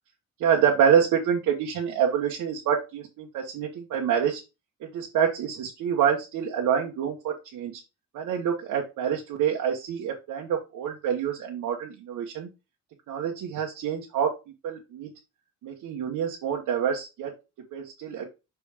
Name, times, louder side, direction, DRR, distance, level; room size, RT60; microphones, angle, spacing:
voice 1, 0.4-4.4 4.9-7.8 8.1-12.5 13.1-14.3 14.6-15.1 15.6-17.3 17.7-18.3, right 8 dB, 80° right, -1 dB, 1.3 m, -26 dB
6.0 x 3.4 x 5.0 m, 0.27 s
cardioid pair, 90°, 30 cm